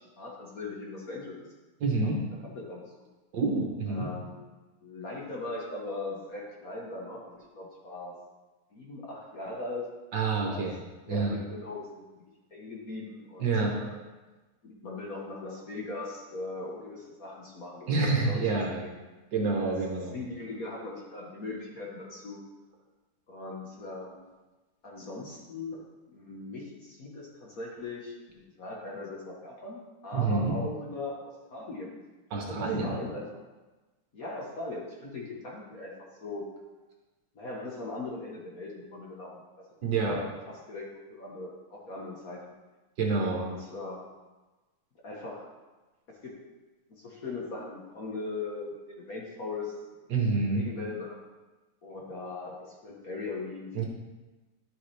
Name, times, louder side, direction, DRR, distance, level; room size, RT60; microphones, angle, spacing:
voice 1, 0.0-1.5 2.0-2.1 2.4-2.9 3.9-4.4 4.8-8.1 8.7-9.8 10.4-10.7 11.1-12.0 12.5-13.9 14.6-18.9 19.6-19.8 20.1-22.4 23.3-24.3 24.8-25.8 26.1-31.9 32.5-33.2 34.1-35.9 36.2-36.5 37.3-39.4 39.8-42.4 43.3-44.1 45.0-45.5 46.2-46.4 46.9-49.8 50.5-51.2 51.8-53.7, left 2 dB, 45° left, -3 dB, 1.4 m, -39 dB
voice 2, 1.8-2.2 3.3-4.1 10.1-10.8 11.1-11.4 13.4-13.8 17.9-18.9 19.3-20.2 30.1-30.6 32.3-33.0 39.8-40.2 43.0-43.4 50.1-50.6 53.7-53.8, right 3 dB, 60° right, 0 dB, 1.5 m, -27 dB
11.0 x 6.4 x 3.3 m, 1.2 s
omnidirectional pair, 2.4 m